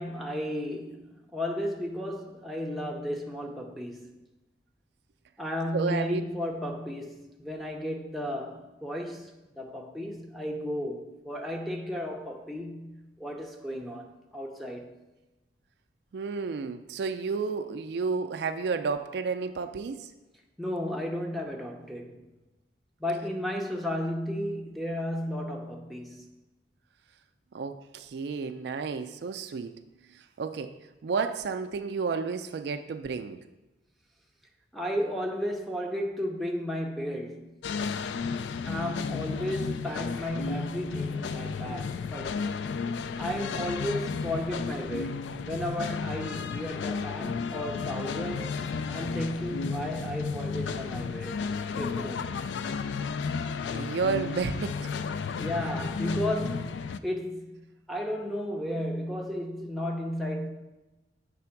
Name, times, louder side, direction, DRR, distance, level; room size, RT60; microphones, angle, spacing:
voice 1, 0.0-4.2 5.4-15.0 20.6-22.3 23.0-26.3 34.7-37.6 38.6-42.6 43.2-45.2 45.4-48.6 48.9-51.4 51.7-52.2 55.4-57.6 57.9-60.5, equal, ahead, 0.6 m, -34 dB
voice 2, 5.7-6.2 16.1-20.1 27.5-29.7 30.4-33.4 53.7-54.9, right 5 dB, 65° right, 0.4 m, -31 dB
sound 1, 37.6-57.0, left 5 dB, 80° left, 0.3 m, -33 dB
7.6 x 3.4 x 5.8 m
head